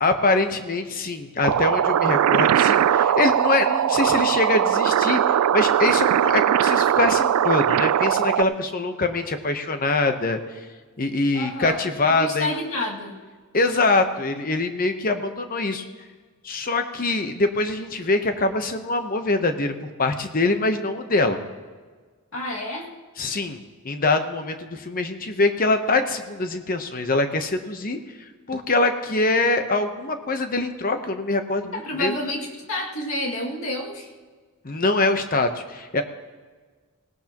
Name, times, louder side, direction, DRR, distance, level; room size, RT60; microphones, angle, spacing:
voice 1, 0.0-10.4 11.0-12.5 13.5-15.8 16.4-21.4 23.2-28.0 28.5-32.1 34.6-36.0, left 2 dB, 40° left, 7 dB, 0.9 m, -24 dB
sound 1, 1.4-8.4, right 9 dB, 85° right, 0.3 m, -20 dB
voice 2, 11.3-11.8 12.1-13.2 22.3-22.9 31.7-34.1, left 1 dB, 70° left, -2 dB, 2.2 m, -29 dB
18.0 x 17.5 x 3.0 m, 1.5 s
head